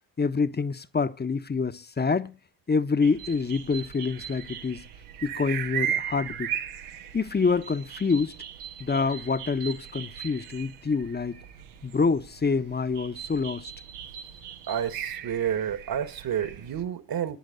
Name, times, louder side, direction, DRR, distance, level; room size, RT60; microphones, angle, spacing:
voice 1, 0.2-2.4 2.7-4.8 5.2-6.5 7.1-8.3 8.8-11.4 11.8-13.7, left 4 dB, 20° left, 1.1 m, -26 dB
sound 1, 3.0-16.8, right 9 dB, 85° right, 1.3 m, -38 dB
voice 2, 14.7-17.4, right 9 dB, 50° right, 1.8 m, -30 dB
15.0 x 10.0 x 4.0 m
hypercardioid pair, 40°, 45 cm